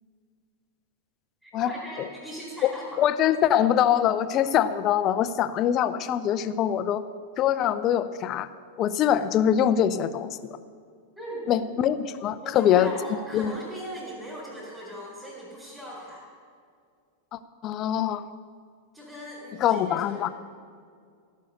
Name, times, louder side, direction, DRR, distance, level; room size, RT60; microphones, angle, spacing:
voice 1, 1.4-3.1 11.2-11.5 12.4-16.2 18.9-20.3, equal, 5° right, -8 dB, 4.3 m, -39 dB
voice 2, 3.0-7.0 7.4-8.5 8.8-10.3 11.5-12.9 13.3-13.5 17.3-18.3 19.6-20.3, left 10 dB, 35° left, 13 dB, 0.6 m, -23 dB
16.5 x 6.6 x 8.1 m, 2.2 s
figure-of-eight pair, 90°, 0 cm